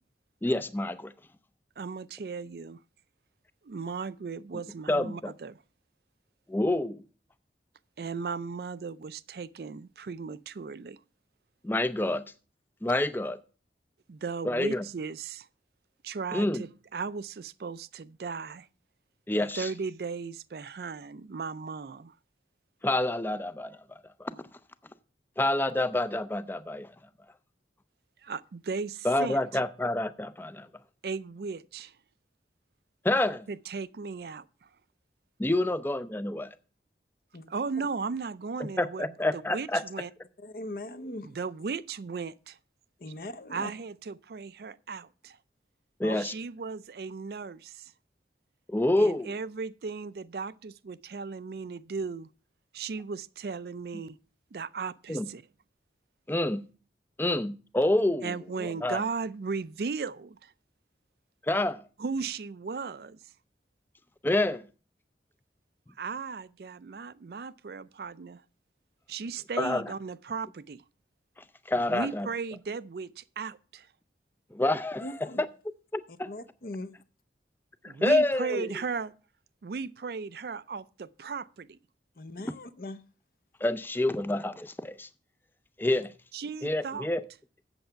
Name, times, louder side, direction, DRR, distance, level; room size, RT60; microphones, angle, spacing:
voice 1, 0.4-1.1 4.9-5.3 6.5-7.0 11.6-12.3 12.8-13.4 14.4-14.9 16.3-16.6 19.3-19.7 22.8-24.3 25.4-26.9 29.0-30.7 33.0-33.5 35.4-36.5 38.8-39.8 46.0-46.3 48.7-49.3 55.1-55.3 56.3-56.6 57.2-59.0 61.4-61.8 64.2-64.6 69.6-69.9 71.7-72.3 74.5-75.1 75.9-76.3 77.8-78.7 83.6-85.1 85.8-86.1 86.6-87.2, left 1 dB, 10° left, 0.4 m, -28 dB
voice 2, 1.8-2.8 3.6-5.6 8.0-11.0 14.1-15.5 16.0-18.7 19.6-22.2 28.2-29.4 31.0-31.9 33.5-34.7 37.5-39.1 39.3-40.1 41.3-42.6 43.5-45.4 46.2-47.9 49.0-52.3 52.7-54.2 54.5-55.4 58.2-60.5 62.0-63.2 66.0-68.4 69.1-70.8 71.9-73.9 77.9-79.1 79.6-81.8 86.3-87.1, right 5 dB, 60° right, 0.4 m, -36 dB
voice 3, 40.4-41.3 43.0-43.7 46.0-46.2 75.0-75.4 76.1-76.9 82.2-83.0 85.9-86.1, left 2 dB, 55° left, 0.7 m, -40 dB
7.9 x 7.7 x 5.7 m
head